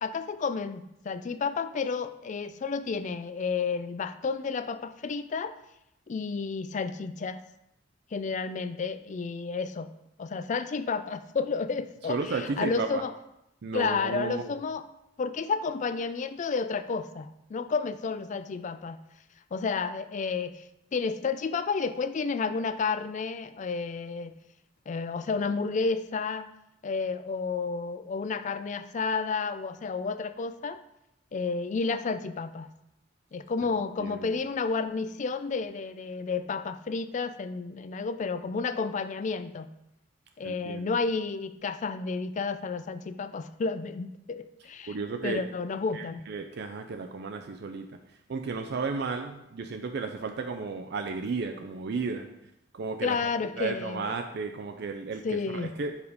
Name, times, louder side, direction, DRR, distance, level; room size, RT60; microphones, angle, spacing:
voice 1, 0.0-5.6 6.1-7.4 8.1-9.9 10.2-13.1 13.7-14.8 15.2-19.0 19.5-24.3 24.9-26.5 26.8-30.8 31.3-32.7 33.3-39.7 40.4-45.0 45.2-46.3 53.0-54.2 55.2-55.7, left 4 dB, 40° left, 11 dB, 0.4 m, -31 dB
voice 2, 12.1-13.0 13.6-14.6 33.6-34.4 40.4-40.9 44.9-45.4 45.9-48.0 48.3-52.3 52.7-53.2 53.6-55.9, right 4 dB, 60° right, 5 dB, 0.4 m, -34 dB
4.9 x 4.9 x 5.2 m, 0.83 s
head